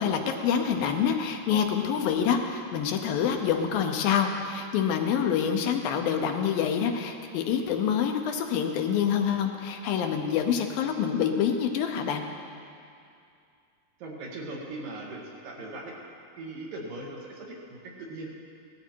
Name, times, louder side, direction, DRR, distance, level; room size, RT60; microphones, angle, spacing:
voice 1, 0.0-12.3, left 7 dB, 75° left, 4 dB, 2.5 m, -26 dB
voice 2, 14.0-15.9 16.4-18.3, right 2 dB, 65° right, -2 dB, 3.4 m, -39 dB
17.5 x 13.0 x 4.5 m, 2.4 s
omnidirectional pair, 4.4 m